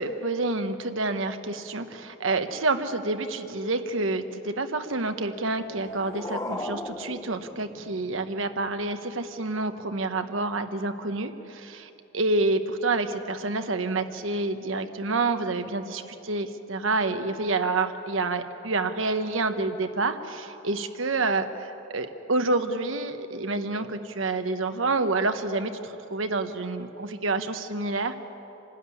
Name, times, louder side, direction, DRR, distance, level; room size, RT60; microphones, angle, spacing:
voice 1, 0.0-28.1, right 3 dB, 75° right, 8 dB, 1.1 m, -28 dB
sound 1, 5.5-8.5, left 2 dB, 15° left, 0.8 m, -37 dB
26.0 x 12.5 x 9.8 m, 3.0 s
head